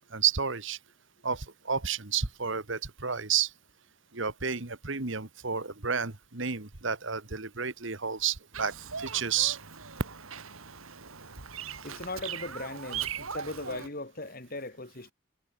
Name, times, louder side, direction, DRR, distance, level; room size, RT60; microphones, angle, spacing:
voice 1, 0.1-0.8 1.2-3.5 4.1-9.6, right 7 dB, 60° right, 1.7 m, -31 dB
Bird vocalization bird call bird song, 8.5-13.9, right 7 dB, 75° right, 3.0 m, -40 dB
voice 2, 11.8-15.1, left 2 dB, 45° left, 2.3 m, -38 dB
head